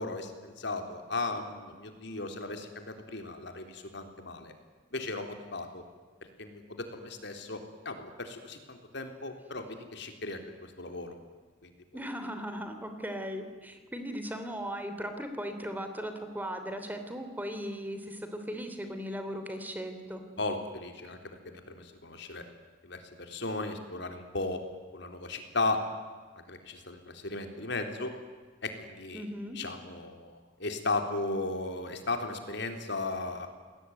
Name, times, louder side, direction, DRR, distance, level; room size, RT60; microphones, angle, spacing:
voice 1, 0.0-4.5 4.9-5.8 6.4-11.2 11.6-11.7 20.4-22.4 22.8-24.6 24.9-25.8 26.5-28.1 28.6-29.3 29.5-33.5, left 3 dB, 60° left, 6 dB, 3.7 m, -36 dB
voice 2, 11.9-20.2 29.1-29.6, equal, 10° right, 7 dB, 3.2 m, -37 dB
29.5 x 21.0 x 9.5 m, 1.5 s
head